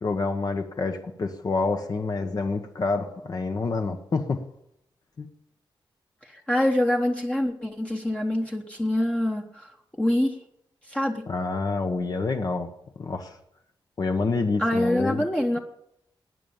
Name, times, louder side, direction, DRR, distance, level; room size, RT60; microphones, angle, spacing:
voice 1, 0.0-4.4 5.2-5.3 11.3-12.7 13.0-13.4 14.0-15.3, left 3 dB, 45° left, 5 dB, 1.1 m, -27 dB
voice 2, 6.3-9.7 10.0-10.4 10.9-11.2 14.6-15.6, left 1 dB, 10° left, 1 dB, 1.1 m, -25 dB
19.5 x 9.2 x 7.2 m, 0.77 s
wide cardioid pair, 140°, 9 cm